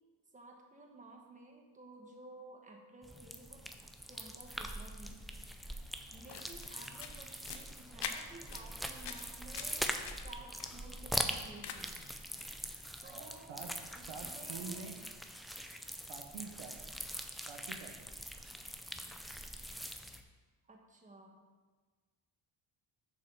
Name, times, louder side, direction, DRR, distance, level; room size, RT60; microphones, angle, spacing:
voice 1, 0.3-3.6 4.1-5.2 6.1-9.9 10.2-12.0 13.0-13.6 13.9-14.9 20.7-21.4, right 2 dB, 15° right, 1 dB, 1.1 m, -54 dB
sound 1, 3.0-20.2, equal, ahead, 0.3 m, -43 dB
sound 2, 6.1-12.0, left 7 dB, 55° left, 0.9 m, -47 dB
voice 2, 13.0-13.7 14.1-15.0 16.1-16.9 17.5-18.1, right 5 dB, 65° right, 3 dB, 1.1 m, -47 dB
6.9 x 5.4 x 5.4 m, 1.4 s
cardioid pair, 110°, 50 cm